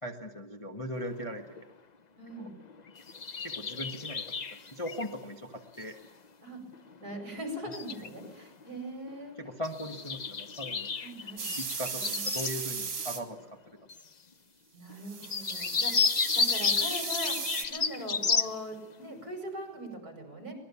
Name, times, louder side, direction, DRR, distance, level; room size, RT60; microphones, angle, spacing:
voice 1, 0.0-1.7 2.4-2.5 3.4-4.2 4.7-5.9 9.4-10.9 11.6-13.4, equal, 20° left, 3 dB, 1.5 m, -39 dB
sound 1, 1.0-1.2 1.6-1.7 2.3-5.2 5.5-6.1 6.7-7.4 7.7-8.8 9.1-9.2 9.5-12.6 13.0-13.1 13.3-13.4 13.9-14.0 14.9-15.0 15.2-18.6, left 5 dB, 65° left, 0.4 m, -32 dB
voice 2, 2.2-2.5 6.4-6.6 7.0-9.3 11.0-11.5 11.9-12.3 14.7-20.5, equal, 50° right, 4 dB, 6.4 m, -41 dB
sound 2, 11.4-13.2 15.0-17.6, right 5 dB, 70° right, 3.2 m, -36 dB
24.5 x 20.0 x 7.1 m, 1.1 s
omnidirectional pair, 2.0 m